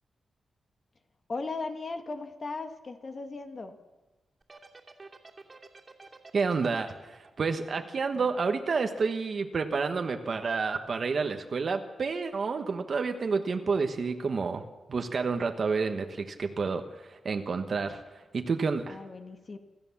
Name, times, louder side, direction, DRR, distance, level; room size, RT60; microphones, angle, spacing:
voice 1, 1.3-3.8 18.9-19.6, left 3 dB, 40° left, 6 dB, 1.5 m, -37 dB
sound 1, 4.4-8.8, right 3 dB, 30° right, 2.6 m, -50 dB
voice 2, 6.3-14.6 14.9-19.0, right 4 dB, 50° right, 6 dB, 1.3 m, -29 dB
26.0 x 14.0 x 7.2 m, 1.2 s
wide cardioid pair, 130°, 0 cm